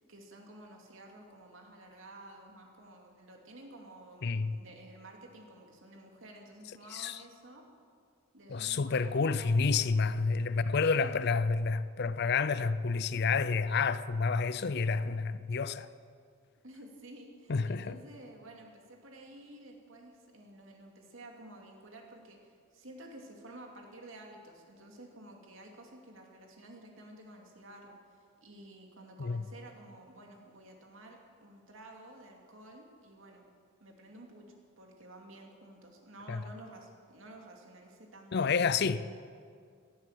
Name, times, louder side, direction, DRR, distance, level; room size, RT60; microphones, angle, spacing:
voice 1, 0.0-7.6 8.3-9.9 10.9-11.1 16.6-33.4 33.8-39.0, right 1 dB, 70° right, 2.5 m, -52 dB
voice 2, 4.2-4.5 6.9-7.2 8.5-15.9 17.5-18.0 29.2-29.4 36.3-36.4 38.3-39.1, left 4 dB, 50° left, 0.5 m, -29 dB
17.5 x 11.0 x 7.5 m
head